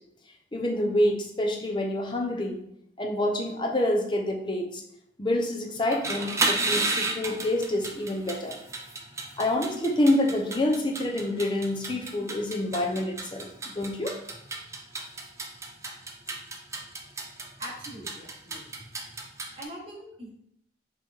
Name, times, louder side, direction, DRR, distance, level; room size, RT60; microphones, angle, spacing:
voice 1, 0.5-2.6 3.0-4.8 5.2-8.6 9.4-13.5 13.7-14.1, left 1 dB, 25° left, 1 dB, 0.7 m, -27 dB
sound 1, 5.8-19.6, right 3 dB, 15° right, 0.4 m, -33 dB
voice 2, 17.6-18.6 19.5-20.3, equal, 35° right, -4 dB, 1.0 m, -42 dB
4.8 x 3.0 x 3.6 m, 0.72 s
head